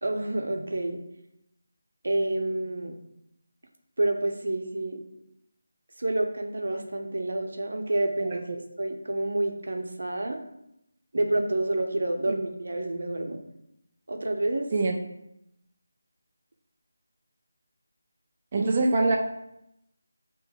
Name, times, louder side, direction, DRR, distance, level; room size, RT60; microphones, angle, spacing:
voice 1, 0.0-1.0 2.0-3.0 4.0-5.0 6.0-8.4 8.8-10.4 11.1-13.4 14.1-14.9 18.6-18.7, right 2 dB, 70° right, 3 dB, 0.8 m, -28 dB
voice 2, 18.5-19.2, right 3 dB, 35° right, 0 dB, 0.4 m, -24 dB
7.2 x 3.0 x 2.3 m, 0.82 s
figure-of-eight pair, 165°, 0 cm